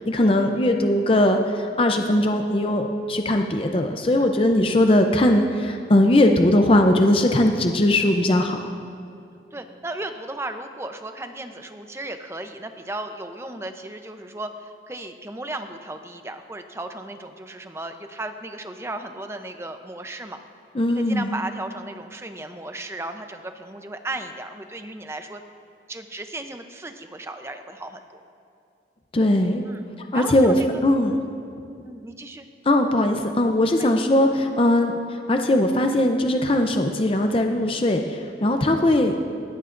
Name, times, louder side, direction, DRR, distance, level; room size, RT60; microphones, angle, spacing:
voice 1, 0.0-8.7 20.7-21.4 29.1-29.6 30.1-30.6 30.8-31.2 32.7-39.1, left 1 dB, 30° left, 4 dB, 0.5 m, -20 dB
voice 2, 9.5-20.4 20.9-25.4 25.9-28.2 29.7-29.8 30.1-30.5 31.1-31.3 31.8-32.5 33.8-34.0, right 2 dB, 15° right, 7 dB, 0.6 m, -35 dB
20.0 x 15.0 x 2.5 m, 2.4 s
head